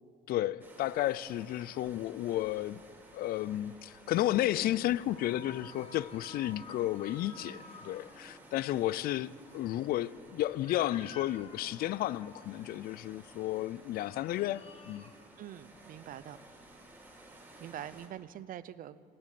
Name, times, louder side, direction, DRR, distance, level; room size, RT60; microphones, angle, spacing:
voice 1, 0.3-2.8 3.1-15.0, left 14 dB, 65° left, 0.4 m, -32 dB
sound 1, 0.6-18.1, right 2 dB, 15° right, 3.3 m, -56 dB
sound 2, 5.0-16.6, left 2 dB, 35° left, 1.5 m, -54 dB
voice 2, 15.4-16.4 17.6-19.0, right 11 dB, 55° right, 0.6 m, -44 dB
18.5 x 7.5 x 8.3 m
cardioid pair, 110°, 17 cm